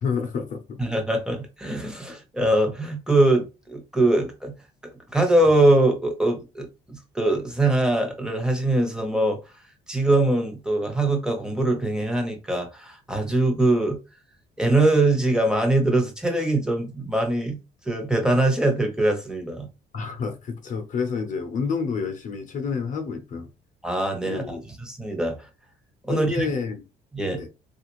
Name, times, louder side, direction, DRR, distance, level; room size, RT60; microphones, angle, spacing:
voice 1, 0.0-0.8 19.9-23.5 24.3-24.6 26.1-26.8 27.4-27.5, left 5 dB, 50° left, 0.7 m, -29 dB
voice 2, 0.8-4.5 5.1-9.4 9.9-14.0 14.6-17.6 17.8-19.7 23.8-25.5 26.1-26.5 27.1-27.4, right 2 dB, 5° right, 1.0 m, -22 dB
3.4 x 2.5 x 3.0 m
cardioid pair, 110°, 17 cm